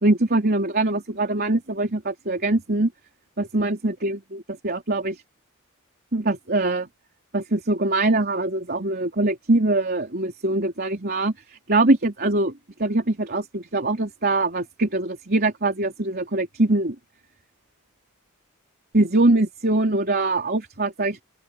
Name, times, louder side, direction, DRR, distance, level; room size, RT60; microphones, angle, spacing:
voice 1, 0.0-2.9 3.4-5.2 6.1-6.9 7.3-12.5 12.8-17.0 18.9-21.2, right 2 dB, 45° right, 3.6 m, -23 dB
open air
head